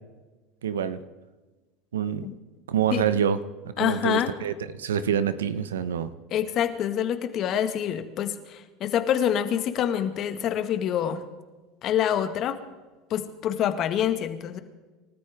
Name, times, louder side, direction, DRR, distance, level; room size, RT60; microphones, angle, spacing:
voice 1, 0.6-1.0 1.9-2.3 2.7-3.4 3.8-6.1, right 8 dB, 85° right, 13 dB, 1.0 m, -26 dB
voice 2, 3.8-4.3 6.3-11.2 11.8-12.6 13.1-14.6, left 10 dB, 50° left, 9 dB, 1.8 m, -26 dB
27.5 x 13.5 x 3.6 m, 1.2 s
hypercardioid pair, 80°, 0 cm